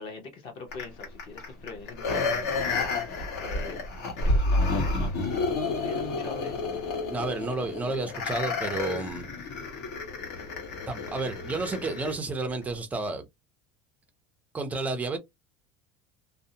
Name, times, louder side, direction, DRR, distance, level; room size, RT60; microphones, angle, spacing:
voice 1, 0.0-2.7 3.0-3.8 4.2-5.3 5.8-6.8, left 4 dB, 35° left, 0.7 m, -42 dB
sound 1, 0.7-12.2 12.6-12.7, left 3 dB, 70° left, 1.2 m, -30 dB
voice 2, 7.1-9.3 10.9-13.2 14.5-15.2, right 3 dB, 10° right, 0.4 m, -31 dB
2.6 x 2.0 x 2.6 m
cardioid pair, 175°, 14 cm